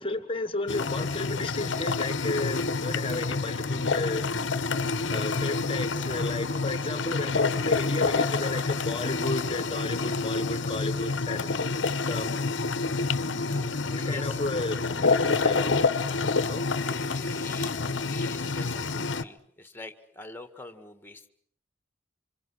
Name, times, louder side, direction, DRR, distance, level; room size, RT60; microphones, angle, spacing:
voice 1, 0.0-4.3 5.1-11.7 12.1-12.4 13.9-15.9 16.5-16.7, left 2 dB, 30° left, 1.3 m, -33 dB
sound 1, 0.7-19.2, left 4 dB, 70° left, 1.0 m, -28 dB
voice 2, 13.4-14.4 16.8-21.3, left 2 dB, 10° left, 1.8 m, -45 dB
27.5 x 26.0 x 6.4 m
head